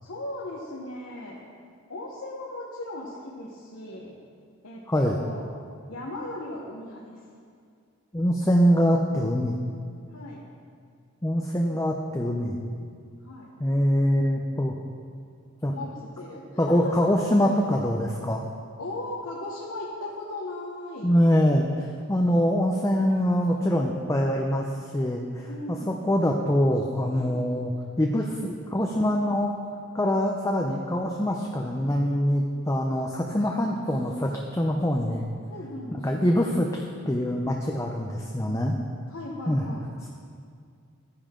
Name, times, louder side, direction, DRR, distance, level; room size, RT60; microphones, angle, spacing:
voice 1, 0.0-1.4 1.9-4.2 4.6-5.5 5.9-7.2 10.1-10.4 13.2-13.5 15.6-17.3 18.8-21.1 25.5-26.0 27.1-27.4 35.5-36.3 39.1-39.9, left 1 dB, 75° left, -4 dB, 1.2 m, -37 dB
voice 2, 4.9-5.2 8.1-9.6 11.2-12.6 13.6-14.7 15.6-15.7 16.6-18.4 21.0-21.7 22.1-27.7 28.0-29.5 29.9-35.3 35.9-38.7 39.5-39.6, equal, 15° left, 0 dB, 0.5 m, -24 dB
12.5 x 10.0 x 3.7 m, 2.2 s
head